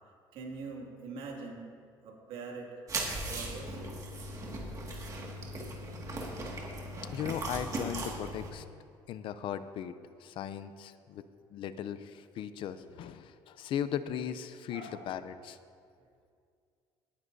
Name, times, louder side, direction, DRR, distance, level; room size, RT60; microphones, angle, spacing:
voice 1, 0.3-1.7 2.0-2.7 3.3-3.8 14.7-15.1, right 4 dB, 80° right, -1 dB, 2.3 m, -43 dB
sound 1, 2.9-8.5, right 1 dB, 35° right, 2.0 m, -38 dB
voice 2, 7.1-8.6 9.1-9.9 10.2-11.2 11.5-15.6, left 9 dB, 60° left, 12 dB, 0.5 m, -37 dB
17.5 x 9.7 x 2.7 m, 2.3 s
cardioid pair, 125°, 10 cm